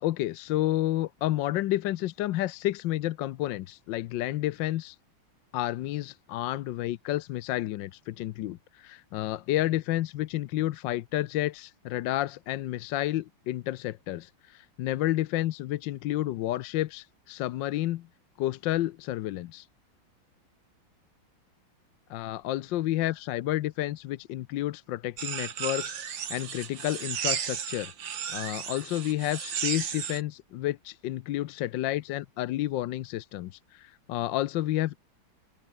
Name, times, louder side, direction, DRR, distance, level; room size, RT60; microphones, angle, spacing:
voice 1, 0.0-5.0 5.5-18.1 18.4-19.7 22.1-27.9 28.3-35.0, left 15 dB, 70° left, 1.3 m, -30 dB
sound 1, 25.2-30.2, right 8 dB, 65° right, 2.3 m, -34 dB
open air
omnidirectional pair, 2.3 m